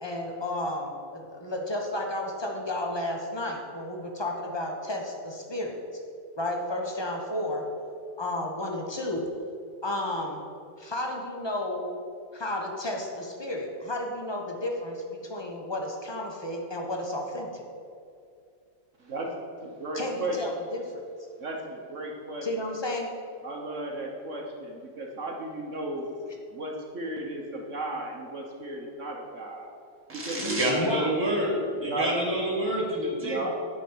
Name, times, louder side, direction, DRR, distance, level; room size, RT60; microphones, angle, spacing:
voice 1, 0.0-5.8 6.4-7.6 8.2-9.3 9.8-10.4 10.8-11.9 12.3-17.6 19.9-21.0 22.4-23.1 30.7-31.1, left 1 dB, 20° left, 1 dB, 0.8 m, -32 dB
voice 2, 19.6-20.5 21.4-22.5 23.4-26.0 26.5-29.7 30.1-30.5 31.8-32.1 33.2-33.5, right 1 dB, 50° right, 0 dB, 1.1 m, -35 dB
voice 3, 30.1-33.5, right 1 dB, 5° right, -2 dB, 1.7 m, -28 dB
9.8 x 5.2 x 6.7 m, 2.4 s
omnidirectional pair, 2.0 m